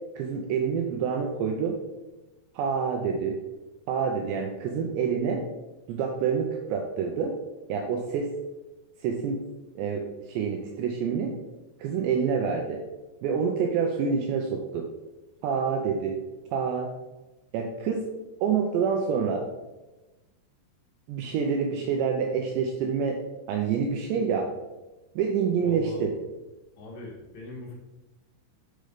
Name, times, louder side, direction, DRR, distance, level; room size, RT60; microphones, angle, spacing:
voice 1, 0.2-1.8 2.6-3.4 3.9-5.4 5.9-7.3 7.7-8.3 9.0-9.4 9.8-11.3 11.8-12.8 13.2-14.9 15.4-16.2 16.5-16.9 17.5-18.0 18.4-19.4 21.1-23.2 23.5-24.5 25.2-26.1, right 6 dB, 85° right, 2 dB, 2.6 m, -27 dB
voice 2, 25.6-26.0 26.8-27.8, left 3 dB, 65° left, -2 dB, 3.4 m, -41 dB
6.6 x 6.4 x 5.0 m, 1.1 s
omnidirectional pair, 5.7 m